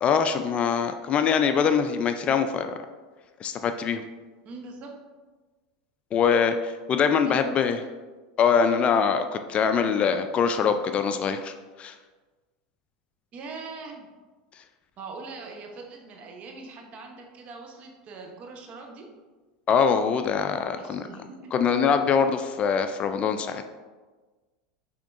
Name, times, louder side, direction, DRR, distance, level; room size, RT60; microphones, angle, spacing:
voice 1, 0.0-2.7 3.4-4.0 6.1-7.8 8.4-11.9 19.7-21.1 21.5-23.6, left 6 dB, 35° left, 8 dB, 0.3 m, -23 dB
voice 2, 4.4-5.0 7.2-7.6 13.3-14.1 15.0-19.1 20.8-21.5, right 3 dB, 40° right, 2 dB, 0.9 m, -41 dB
5.8 x 3.6 x 2.5 m, 1.3 s
hypercardioid pair, 100°, 3 cm